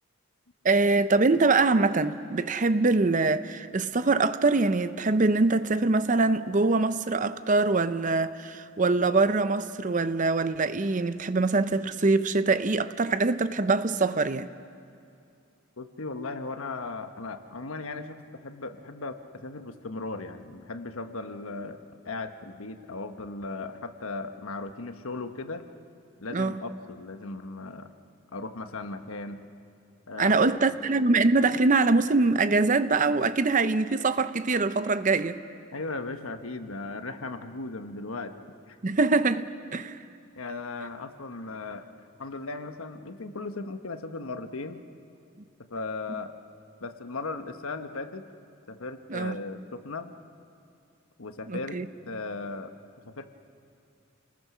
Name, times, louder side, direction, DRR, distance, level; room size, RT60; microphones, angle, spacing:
voice 1, 0.6-14.5 26.3-26.6 30.2-35.4 38.8-40.0 49.1-49.4 51.5-51.9, right 3 dB, 40° right, 0.6 m, -24 dB
voice 2, 15.8-21.8 22.0-25.7 26.2-27.9 28.3-29.4 30.1-30.4 35.7-38.4 38.7-38.8 40.4-41.9 42.2-44.9 45.7-46.3 46.8-48.2 48.7-50.1 51.2-52.7 53.1-53.3, left 3 dB, 85° left, 1.2 m, -37 dB
29.5 x 20.0 x 6.2 m
head